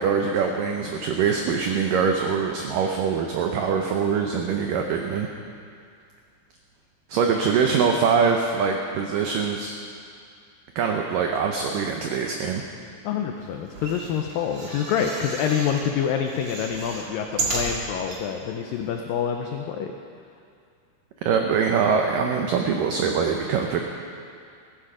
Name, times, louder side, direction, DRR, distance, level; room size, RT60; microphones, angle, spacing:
voice 1, 0.0-5.3 7.1-9.7 10.8-12.6 21.2-23.8, right 6 dB, 85° right, 3 dB, 1.9 m, -23 dB
voice 2, 13.0-19.9, left 8 dB, 90° left, 4 dB, 1.9 m, -27 dB
sound 1, 13.7-15.9 16.3-18.2 18.8-18.9 19.1-19.2, right 3 dB, 45° right, 2.1 m, -33 dB
14.5 x 14.5 x 5.0 m, 2.3 s
omnidirectional pair, 5.0 m